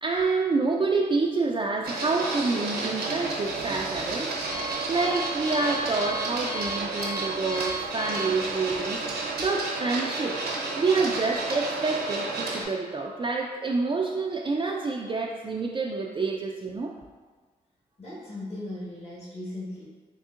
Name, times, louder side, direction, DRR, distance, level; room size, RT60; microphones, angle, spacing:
voice 1, 0.0-4.3 4.6-9.0 9.4-10.4 10.8-16.9, right 3 dB, 30° right, -1 dB, 0.4 m, -27 dB
Printer, 1.8-12.6, right 3 dB, 75° right, 0.8 m, -32 dB
Alarm, 3.1-9.5, right 1 dB, 75° left, 0.8 m, -38 dB
voice 2, 18.0-19.9, left 1 dB, 40° left, -8 dB, 1.3 m, -37 dB
3.7 x 3.4 x 2.4 m, 1.4 s
supercardioid pair, 45°, 17 cm